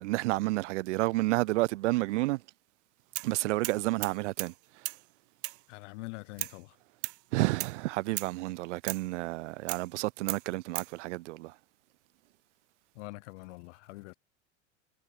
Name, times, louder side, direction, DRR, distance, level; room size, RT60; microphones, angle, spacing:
voice 1, 0.0-2.4 3.2-4.5 7.3-11.5, right 20 dB, 65° right, 0.5 m, -30 dB
sound 1, 3.2-3.3 3.6-4.6 4.8-5.0 5.4-5.6 6.4-6.6 7.0-7.2 7.6-7.8 8.2-8.4 8.9-9.1 9.7-9.9 10.3-10.9, right 20 dB, 50° right, 2.4 m, -36 dB
voice 2, 5.7-6.8 12.9-14.1, left 24 dB, 60° left, 7.6 m, -44 dB
figure-of-eight pair, 80°, 39 cm